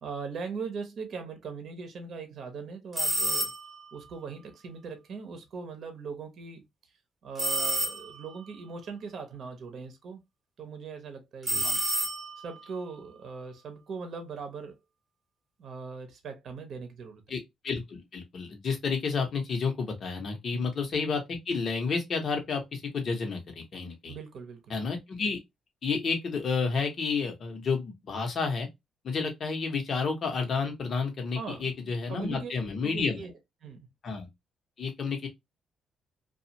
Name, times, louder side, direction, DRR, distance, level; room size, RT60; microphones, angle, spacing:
voice 1, 0.0-3.5 3.9-6.6 7.2-10.2 10.6-11.8 12.4-14.8 15.6-17.2 20.5-20.7 24.1-24.8 31.4-32.5 32.8-33.3 33.6-33.9, right 5 dB, 60° right, 0.7 m, -40 dB
sound 1, 2.9-3.9 7.4-8.4 11.4-12.6, right 2 dB, 35° right, 1.0 m, -29 dB
voice 2, 17.3-24.2 24.7-25.4 25.8-28.7 29.0-33.2 34.0-34.3 34.8-35.3, left 5 dB, 50° left, 1.0 m, -31 dB
2.4 x 2.4 x 2.8 m
cardioid pair, 90°, 0 cm